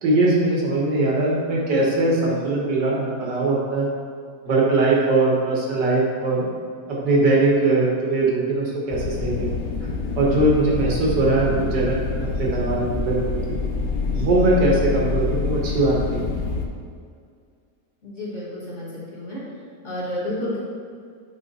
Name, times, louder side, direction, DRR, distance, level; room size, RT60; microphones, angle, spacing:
voice 1, 0.0-3.9 4.5-6.5 6.9-9.5 10.2-13.2 14.1-16.2, right 2 dB, 80° right, -4 dB, 1.9 m, -21 dB
sound 1, 8.9-16.7, left 4 dB, 65° left, 1.0 m, -26 dB
voice 2, 18.0-18.8 19.1-19.4 19.8-20.6, left 1 dB, 45° left, -7 dB, 1.9 m, -30 dB
8.1 x 3.4 x 4.1 m, 2.2 s
omnidirectional pair, 1.8 m